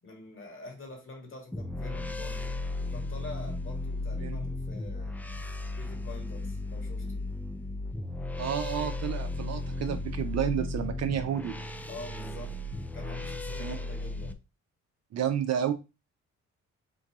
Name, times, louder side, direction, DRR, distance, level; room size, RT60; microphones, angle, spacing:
voice 1, 0.0-5.2 5.8-7.3 11.9-12.6 12.9-14.4, left 3 dB, 45° left, 1 dB, 2.0 m, -46 dB
sound 1, 1.5-14.3, left 2 dB, 5° left, 0.3 m, -35 dB
voice 2, 8.4-11.5 13.6-13.8 15.1-15.7, right 9 dB, 60° right, 7 dB, 0.6 m, -30 dB
3.8 x 2.6 x 4.6 m, 0.27 s
cardioid pair, 90°, 30 cm